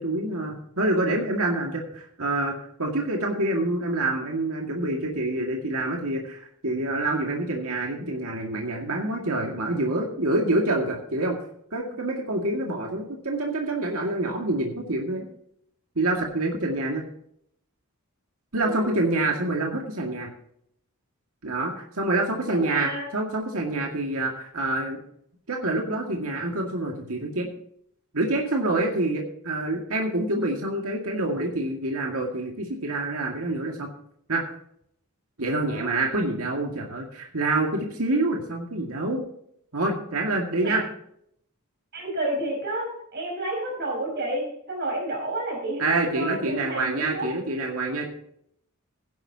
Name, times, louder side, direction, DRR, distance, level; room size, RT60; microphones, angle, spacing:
voice 1, 0.0-11.4 11.7-15.3 16.0-17.0 18.5-20.3 21.4-25.0 25.5-27.5 28.1-33.9 34.3-34.5 35.4-39.2 39.7-40.8 45.8-48.1, right 2 dB, 70° right, 1 dB, 2.1 m, -27 dB
voice 2, 18.5-18.9 22.5-23.1 35.7-35.9 40.5-40.8 41.9-47.3, right 1 dB, 50° right, 0 dB, 4.9 m, -31 dB
16.5 x 10.5 x 2.9 m, 0.70 s
head